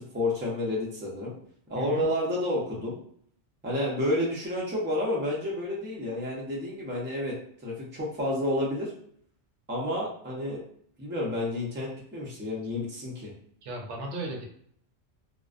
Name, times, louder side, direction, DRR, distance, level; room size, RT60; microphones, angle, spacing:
voice 1, 0.0-1.3 1.7-3.0 3.6-7.4 7.6-8.9 9.7-10.6 11.0-13.3, left 1 dB, 15° right, -4 dB, 0.4 m, -30 dB
voice 2, 1.7-2.1 13.6-14.5, right 2 dB, 80° right, 1 dB, 0.9 m, -36 dB
2.4 x 2.1 x 2.4 m, 0.64 s
omnidirectional pair, 1.2 m